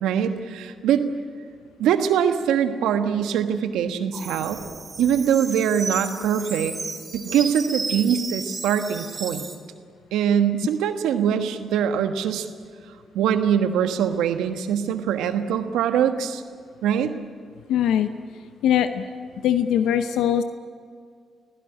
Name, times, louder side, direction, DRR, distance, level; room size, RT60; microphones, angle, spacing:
voice 1, 0.0-1.0 1.8-4.6 5.0-6.7 7.1-9.4 10.1-12.5 13.1-16.4 16.8-17.1, right 8 dB, 85° right, 8 dB, 1.4 m, -23 dB
sound 1, 4.1-9.6, right 3 dB, 35° right, 4.0 m, -33 dB
voice 2, 17.7-18.1 18.6-19.0 19.4-20.4, left 10 dB, 80° left, 10 dB, 0.8 m, -21 dB
24.5 x 16.0 x 10.0 m, 2.1 s
supercardioid pair, 55°, 0 cm